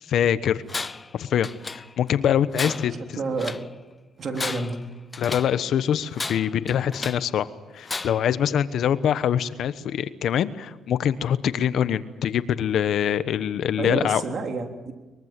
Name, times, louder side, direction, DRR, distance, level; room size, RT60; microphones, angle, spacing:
voice 1, 0.1-0.6 1.1-2.9 5.2-7.5 7.7-14.2, left 9 dB, 70° left, 13 dB, 1.1 m, -24 dB
Tools, 0.7-1.1 1.4-2.1 2.5-3.7 4.2-5.6 6.1-7.3 7.8-8.4, left 3 dB, 25° left, 0.7 m, -34 dB
voice 2, 3.2-3.5 4.2-4.8 13.8-14.9, right 3 dB, 50° right, 4 dB, 3.5 m, -29 dB
23.0 x 22.5 x 7.7 m, 1.2 s
cardioid pair, 90°, 0 cm